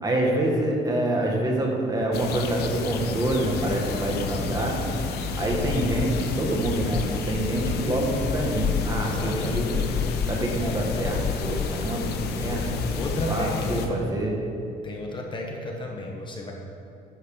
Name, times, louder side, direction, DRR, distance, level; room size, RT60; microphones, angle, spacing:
voice 1, 0.0-4.8 5.4-9.9 10.3-12.6 13.3-14.4, right 1 dB, 20° right, -1 dB, 1.6 m, -26 dB
sound 1, 2.1-13.9, left 5 dB, 75° left, 0.8 m, -31 dB
sound 2, 4.9-13.3, left 7 dB, 45° left, 0.4 m, -32 dB
voice 2, 9.0-9.7 12.9-14.0 14.8-16.5, left 1 dB, 30° left, 0 dB, 1.1 m, -33 dB
10.0 x 3.9 x 7.2 m, 2.7 s
cardioid pair, 110°, 17 cm